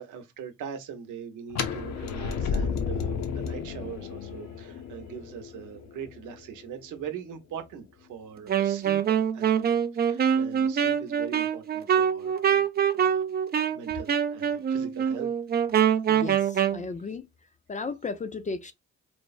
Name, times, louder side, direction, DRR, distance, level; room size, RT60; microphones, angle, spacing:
voice 1, 0.0-12.7 13.0-13.3 13.7-15.3, right 8 dB, 80° right, 0.8 m, -41 dB
sound 1, 1.5-7.4, left 6 dB, 65° left, 0.7 m, -33 dB
Wind instrument woodwind instrument, 8.5-16.8, right 8 dB, 35° right, 0.4 m, -25 dB
voice 2, 16.1-17.3 17.7-18.7, left 4 dB, 25° left, 0.4 m, -35 dB
3.2 x 2.0 x 2.4 m
cardioid pair, 90°, 30 cm